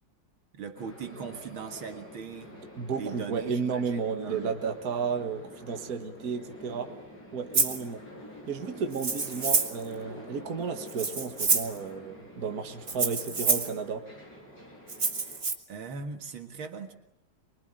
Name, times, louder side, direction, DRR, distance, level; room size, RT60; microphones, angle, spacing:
voice 1, 0.5-2.6 2.9-4.5 15.7-16.9, right 5 dB, 70° right, 5 dB, 2.5 m, -40 dB
sound 1, 0.7-15.4, left 1 dB, 45° left, 8.3 m, -47 dB
voice 2, 2.8-6.9 7.3-8.0 8.5-14.0, right 5 dB, 45° right, 5 dB, 2.0 m, -33 dB
Rattle (instrument), 7.5-7.8 8.9-9.8 10.9-11.8 12.9-13.7 14.9-15.5, right 4 dB, 30° right, 1.7 m, -27 dB
24.5 x 23.5 x 8.9 m, 0.89 s
omnidirectional pair, 2.3 m